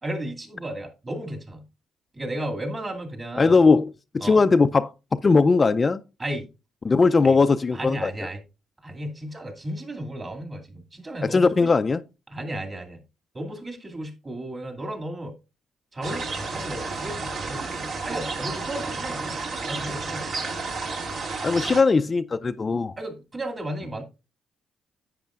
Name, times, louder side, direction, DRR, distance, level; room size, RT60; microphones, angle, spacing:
voice 1, 0.0-1.6 2.1-3.7 4.2-4.4 6.2-6.5 7.2-7.4 7.7-8.4 8.8-11.7 12.3-13.0 13.3-15.3 15.9-19.4 19.7-20.3 23.0-24.0, right 1 dB, 30° right, 2.2 m, -34 dB
voice 2, 3.4-4.9 5.2-6.0 6.8-8.1 11.3-12.0 21.4-22.9, left 4 dB, 30° left, 0.4 m, -19 dB
sound 1, 16.0-21.8, right 3 dB, 65° right, 1.9 m, -31 dB
10.5 x 8.4 x 2.4 m
cardioid pair, 90°, 0 cm